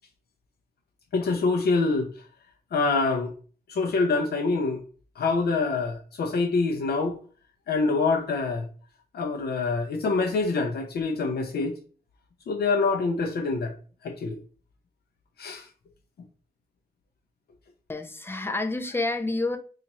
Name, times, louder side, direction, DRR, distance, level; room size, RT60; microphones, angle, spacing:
voice 1, 1.1-2.1 2.7-3.3 3.7-4.8 5.2-7.2 7.7-8.7 9.1-11.8 12.5-13.8 14.0-14.4 15.4-15.7, left 4 dB, 80° left, 0.5 m, -25 dB
voice 2, 17.9-19.6, left 2 dB, 15° left, 0.4 m, -28 dB
4.0 x 2.4 x 2.9 m
wide cardioid pair, 95°, 16 cm